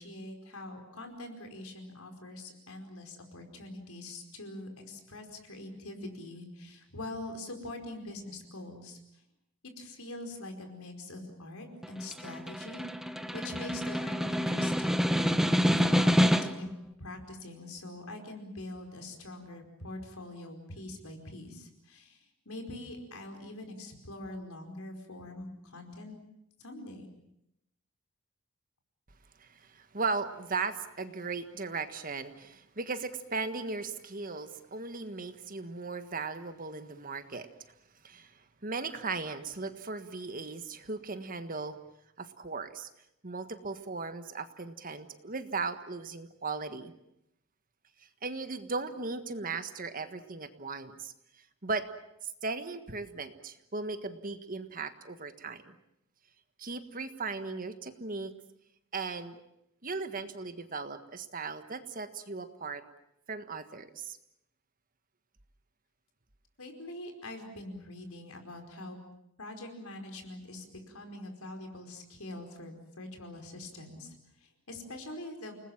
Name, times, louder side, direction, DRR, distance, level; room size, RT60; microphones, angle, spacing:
voice 1, 0.0-9.0 9.6-12.9 13.3-15.1 15.6-16.7 17.0-26.2 26.6-27.1 66.6-69.0 69.4-75.5, left 2 dB, 90° left, 5 dB, 4.9 m, -44 dB
Snare drum, 11.8-16.7, equal, ahead, 1.0 m, -27 dB
voice 2, 29.4-37.5 38.0-38.3 38.6-41.8 42.2-42.9 43.2-46.9 48.2-51.9 52.2-55.7 56.6-58.3 58.9-59.4 59.8-62.8 63.3-64.2, right 4 dB, 40° right, 9 dB, 1.6 m, -37 dB
29.5 x 20.0 x 7.4 m, 0.81 s
head